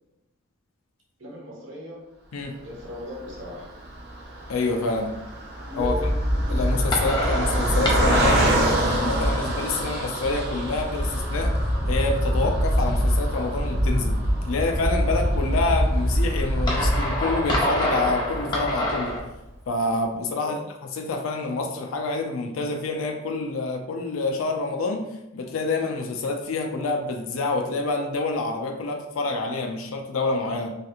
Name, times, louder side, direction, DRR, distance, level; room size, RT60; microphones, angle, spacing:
voice 1, 1.2-2.1 2.6-3.7 5.7-6.7 20.3-20.6, equal, 70° right, -5 dB, 1.2 m, -37 dB
Car passing by, 2.8-18.3 18.8-18.9 19.2-19.4, right 2 dB, 50° right, 0.7 m, -30 dB
voice 2, 4.5-5.1 5.8-6.0 6.5-11.6 11.9-14.1 14.4-19.2 19.7-20.6 21.0-25.1 25.3-30.8, left 3 dB, 90° left, 3 dB, 0.4 m, -27 dB
sound 1, 5.8-19.2, equal, 20° left, 0.6 m, -25 dB
3.2 x 2.8 x 2.4 m, 0.88 s
head